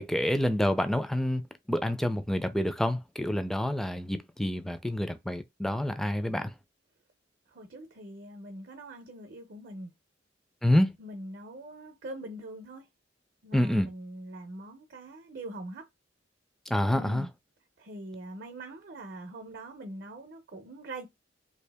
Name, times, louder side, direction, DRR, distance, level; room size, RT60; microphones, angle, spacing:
voice 1, 0.0-1.4 1.7-6.5 10.6-10.9 13.5-13.9 16.7-17.3, left 1 dB, ahead, 0.4 m, -27 dB
voice 2, 7.5-9.9 11.0-12.8 13.4-15.8 16.9-17.3 17.8-21.1, right 1 dB, 55° right, 0.7 m, -43 dB
2.8 x 2.7 x 3.4 m
head